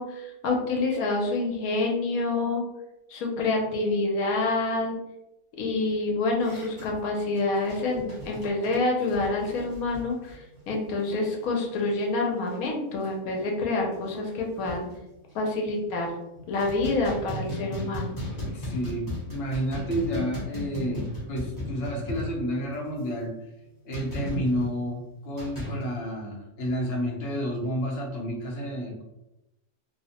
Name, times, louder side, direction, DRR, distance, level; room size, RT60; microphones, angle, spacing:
voice 1, 0.0-2.7 3.1-5.0 5.6-14.9 15.3-16.1 16.5-18.2, left 2 dB, 80° left, 0 dB, 1.1 m, -27 dB
sound 1, 6.4-11.5 11.7-11.9 12.3-12.7 13.0-13.1 13.6-13.7 13.9-15.0 15.6-16.1 16.4-22.8 23.9-24.7 25.4-25.8, left 1 dB, 20° left, 0.8 m, -36 dB
voice 2, 18.5-23.3 23.8-29.0, equal, 60° left, -1 dB, 0.8 m, -30 dB
2.7 x 2.0 x 2.7 m, 0.93 s
omnidirectional pair, 1.5 m